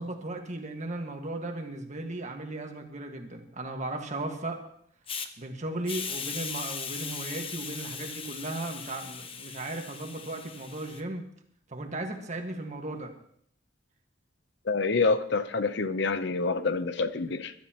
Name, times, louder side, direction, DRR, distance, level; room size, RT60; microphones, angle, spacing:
voice 1, 0.0-4.6 5.4-11.2 11.7-13.1, right 2 dB, 40° right, 1.7 m, -36 dB
Hiss, 5.1-5.3 5.9-11.0, left 6 dB, 30° left, 0.9 m, -38 dB
voice 2, 14.7-17.5, left 4 dB, 65° left, 0.8 m, -27 dB
21.5 x 12.5 x 3.0 m
head